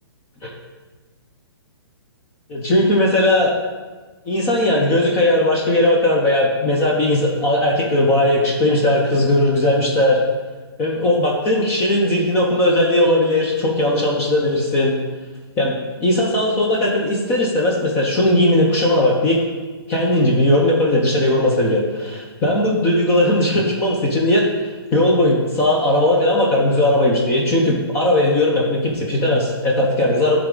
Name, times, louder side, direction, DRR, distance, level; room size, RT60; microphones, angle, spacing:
voice 1, 2.5-3.5 4.3-10.2 10.8-15.0 15.6-15.7 16.0-19.4 19.9-24.5 24.9-30.4, left 1 dB, 15° left, -2 dB, 0.7 m, -18 dB
10.0 x 3.6 x 3.8 m, 1.3 s
hypercardioid pair, 165°, 14 cm